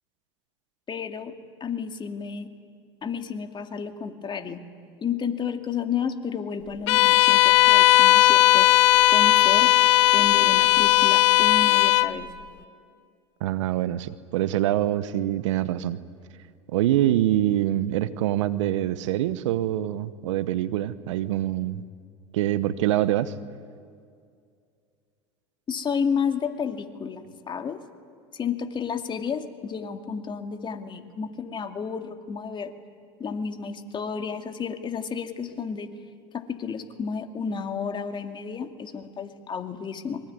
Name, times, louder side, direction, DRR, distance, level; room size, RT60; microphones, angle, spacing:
voice 1, 0.9-1.3 1.6-2.5 3.0-4.6 5.0-8.7 9.1-9.7 10.1-12.3 25.7-27.8 28.3-32.7 33.2-35.9 36.3-40.2, left 6 dB, 30° left, 6 dB, 2.4 m, -31 dB
Bowed string instrument, 6.9-12.2, left 16 dB, 70° left, 0.8 m, -17 dB
voice 2, 13.4-16.0 16.7-21.8 22.3-23.3, right 13 dB, 75° right, 15 dB, 1.0 m, -25 dB
24.5 x 23.5 x 9.6 m, 2.3 s
hypercardioid pair, 85°, 16 cm